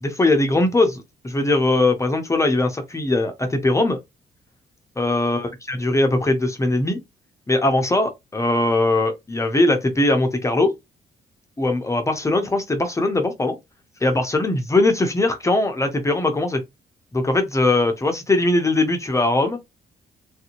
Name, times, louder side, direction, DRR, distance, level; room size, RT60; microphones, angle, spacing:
voice 1, 0.0-4.0 5.0-7.0 7.5-10.7 11.6-13.6 14.0-16.6 17.1-19.6, left 2 dB, 15° left, 0.6 m, -20 dB
3.2 x 2.6 x 2.9 m
cardioid pair, 135°, 18 cm